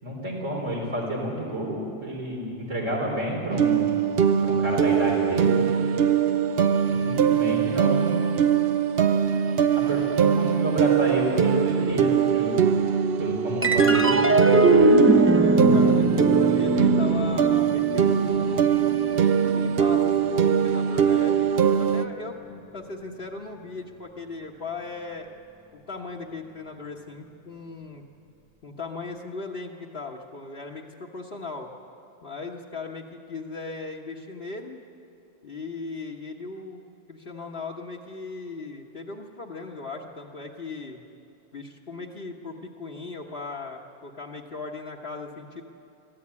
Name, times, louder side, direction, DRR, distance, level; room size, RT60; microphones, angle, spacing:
voice 1, 0.0-4.0 4.4-5.6 7.0-8.2 9.8-12.6 13.2-15.0, right 1 dB, 90° right, -3 dB, 4.5 m, -30 dB
sound 1, 3.5-22.0, right 8 dB, 60° right, 0.9 m, -22 dB
sound 2, 13.6-20.3, right 2 dB, 15° right, 0.7 m, -21 dB
voice 2, 15.7-18.9 19.5-25.4 25.7-28.0 28.6-31.7 32.2-34.8 35.4-41.0 41.5-45.6, left 3 dB, 50° left, 0 dB, 1.5 m, -38 dB
22.5 x 14.5 x 9.7 m, 2.7 s
omnidirectional pair, 1.3 m